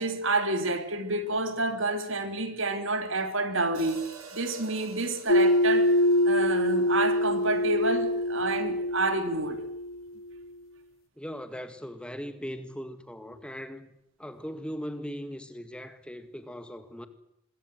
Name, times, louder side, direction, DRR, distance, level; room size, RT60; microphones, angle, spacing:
voice 1, 0.0-5.9 6.2-9.7, right 2 dB, 60° right, 3.1 m, -29 dB
Hi-hat, 3.7-7.9, right 4 dB, 80° right, 7.7 m, -48 dB
sound 1, 5.3-10.0, left 1 dB, 70° left, 0.9 m, -25 dB
voice 2, 11.2-13.9 14.2-17.1, equal, 5° left, 2.0 m, -39 dB
26.5 x 22.0 x 7.8 m
head